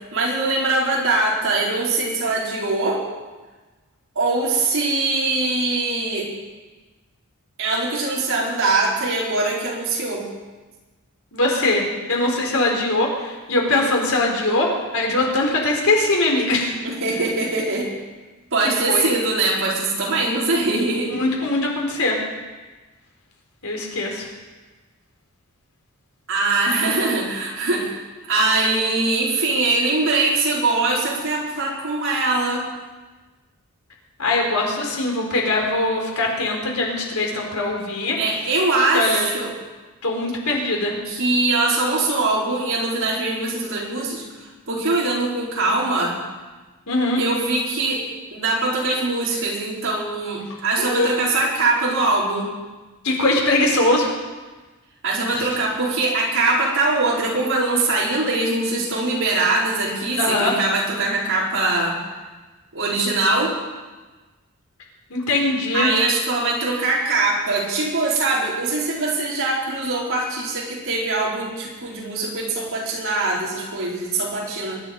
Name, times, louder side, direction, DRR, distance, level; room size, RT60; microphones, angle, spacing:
voice 1, 0.1-3.0 4.1-6.3 7.6-10.2 16.8-17.9 18.5-21.1 26.3-28.0 28.3-32.7 38.1-39.5 41.1-44.2 44.7-46.2 47.2-48.0 48.3-52.5 55.0-62.0 62.7-63.5 65.7-74.8, right 2 dB, 65° right, -5 dB, 4.9 m, -22 dB
voice 2, 11.3-16.7 18.9-19.1 21.2-22.2 23.6-24.3 34.2-38.2 38.9-39.3 40.0-40.9 46.9-47.2 50.8-51.1 53.0-54.1 55.3-55.5 60.2-60.5 65.1-65.9, left 2 dB, 75° left, 0 dB, 4.2 m, -21 dB
23.0 x 11.5 x 5.4 m, 1.3 s
head